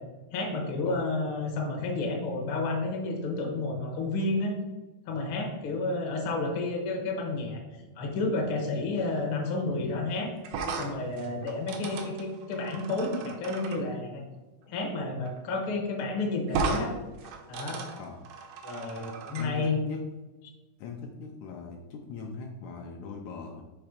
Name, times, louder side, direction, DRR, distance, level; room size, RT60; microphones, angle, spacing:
voice 1, 0.3-4.6 5.1-7.6 8.0-10.3 10.8-14.2 14.7-16.9 17.5-17.8 18.6-19.8, left 2 dB, 65° left, 1 dB, 1.3 m, -31 dB
sound 1, 10.4-13.8 15.3-15.4 15.7-15.8 16.5-16.9 17.2-19.5, right 4 dB, 75° right, 1.7 m, -35 dB
voice 2, 19.4-20.0 20.8-23.6, left 4 dB, 80° left, 2 dB, 1.8 m, -40 dB
5.9 x 3.2 x 5.0 m, 1.1 s
omnidirectional pair, 3.7 m